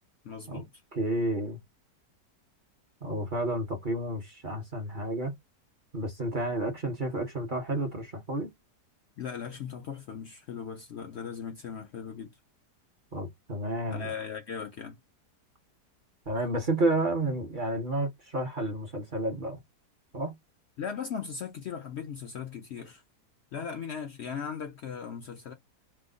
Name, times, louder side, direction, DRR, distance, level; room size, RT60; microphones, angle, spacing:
voice 1, 0.2-0.7 9.2-12.3 13.9-15.0 20.8-23.0 23.5-25.5, left 7 dB, 80° left, 0.6 m, -38 dB
voice 2, 0.9-1.6 3.0-5.3 5.9-8.5 13.1-14.1 16.3-19.6 20.1-20.4, right 1 dB, 50° right, 0.6 m, -31 dB
3.0 x 2.0 x 3.7 m
omnidirectional pair, 1.8 m